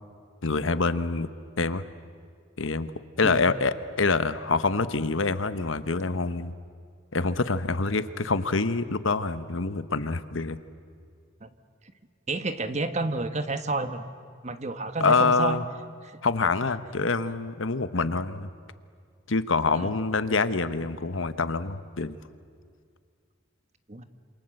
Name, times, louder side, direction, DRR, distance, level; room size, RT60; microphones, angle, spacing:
voice 1, 0.4-1.3 1.6-1.8 2.6-2.9 3.2-6.5 7.1-10.6 15.0-15.6 16.2-18.5 19.3-22.2, left 4 dB, 80° left, 13 dB, 1.1 m, -26 dB
voice 2, 12.3-14.0 14.4-15.6 16.0-16.2 19.7-19.9 23.9-24.0, right 2 dB, 35° right, 10 dB, 1.3 m, -30 dB
27.5 x 27.5 x 7.8 m, 2.2 s
head